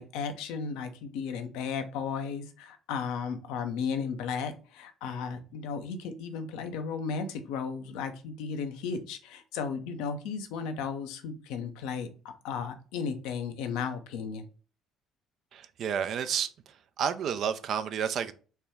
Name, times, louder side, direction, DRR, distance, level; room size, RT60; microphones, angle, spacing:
voice 1, 0.0-12.1 12.4-14.5, left 6 dB, 75° left, 0.5 m, -34 dB
voice 2, 15.5-16.5 17.0-18.3, right 8 dB, 60° right, 0.4 m, -30 dB
4.3 x 2.2 x 3.4 m
hypercardioid pair, 55°, 0 cm